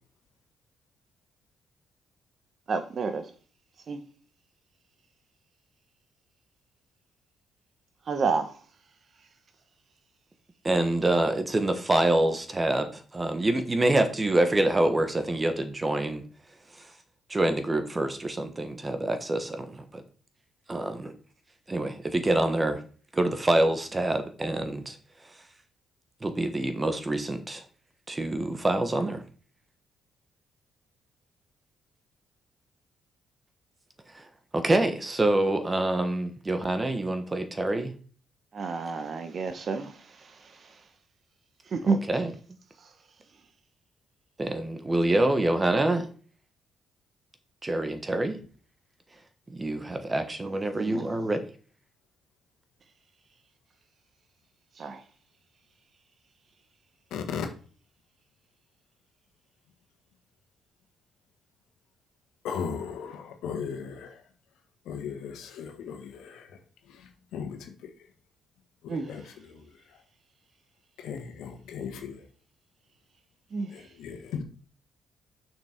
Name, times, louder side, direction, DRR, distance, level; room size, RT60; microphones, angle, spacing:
voice 1, 2.7-3.2 3.9-4.0 8.1-8.5 38.5-39.9 41.7-42.0 50.4-51.1 54.8-55.0 68.9-69.1 73.5-73.7, right 4 dB, 50° right, 1.0 m, -29 dB
voice 2, 10.6-16.2 17.3-20.0 20.7-21.1 21.7-22.8 23.1-25.0 26.2-27.6 28.1-29.2 34.5-37.9 41.8-42.3 44.4-46.1 47.6-48.4 49.5-51.4, right 2 dB, 20° right, 1.2 m, -26 dB
voice 3, 57.1-57.5 62.4-64.2 64.8-66.5 66.9-67.9 68.8-69.6 71.0-72.2 73.7-74.4, left 7 dB, 85° left, 1.5 m, -37 dB
6.1 x 6.0 x 4.5 m
cardioid pair, 90°, 0 cm